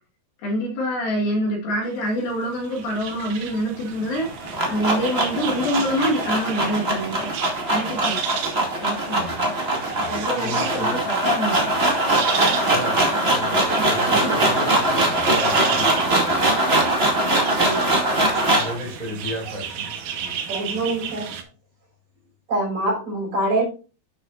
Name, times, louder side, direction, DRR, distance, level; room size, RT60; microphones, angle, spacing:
voice 1, 0.4-7.3 7.7-8.2 8.8-9.3 10.1-11.7 13.7-13.8 14.2-14.3 17.3-17.8, equal, 65° left, 3.7 m, -26 dB
sound 1, 1.9-21.4, right 7 dB, 70° right, 1.8 m, -33 dB
sound 2, 4.2-18.8, right 1 dB, 25° right, 1.3 m, -22 dB
voice 2, 9.1-9.4 10.0-11.0 12.7-16.9 18.6-20.4, left 1 dB, 10° left, 3.8 m, -34 dB
voice 3, 20.5-21.3 22.5-23.6, right 1 dB, 45° right, 6.3 m, -24 dB
12.0 x 6.5 x 2.5 m
omnidirectional pair, 4.8 m